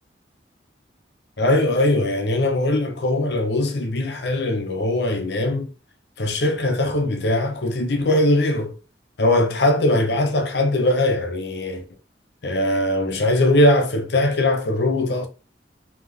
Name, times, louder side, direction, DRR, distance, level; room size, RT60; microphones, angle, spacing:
voice 1, 1.4-5.7 6.2-8.7 9.2-11.8 12.4-15.3, left 1 dB, 65° left, 0.7 m, -20 dB
3.5 x 3.4 x 3.5 m
head